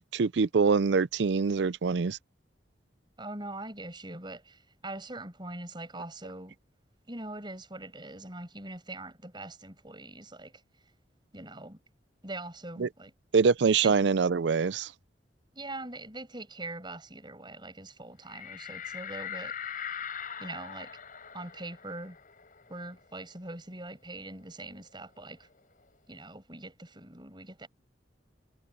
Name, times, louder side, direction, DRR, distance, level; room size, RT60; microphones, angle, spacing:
voice 1, 0.0-2.2 12.8-12.9 13.3-14.9, right 5 dB, 75° right, 0.5 m, -24 dB
voice 2, 3.2-6.6 7.1-10.6 11.3-11.8 12.2-13.1 13.8-13.9 15.5-19.6 20.4-21.0 21.3-22.2 22.7-25.5 26.1-27.7, right 2 dB, 25° right, 8.0 m, -42 dB
sound 1, 18.3-23.5 23.8-23.9 24.3-25.9, left 8 dB, 50° left, 5.1 m, -42 dB
head